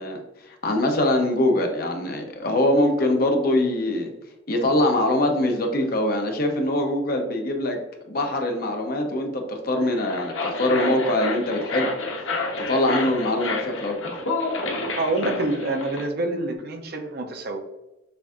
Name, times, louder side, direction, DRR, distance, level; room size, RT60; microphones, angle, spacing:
voice 1, 0.0-4.1 4.5-7.8 8.0-11.9 12.6-14.2, left 1 dB, 50° left, 3 dB, 0.7 m, -23 dB
sound 1, 9.8-16.1, left 2 dB, 85° left, 0.8 m, -29 dB
voice 2, 15.0-17.6, right 2 dB, 55° right, 5 dB, 0.6 m, -26 dB
6.7 x 2.6 x 2.4 m, 0.98 s
head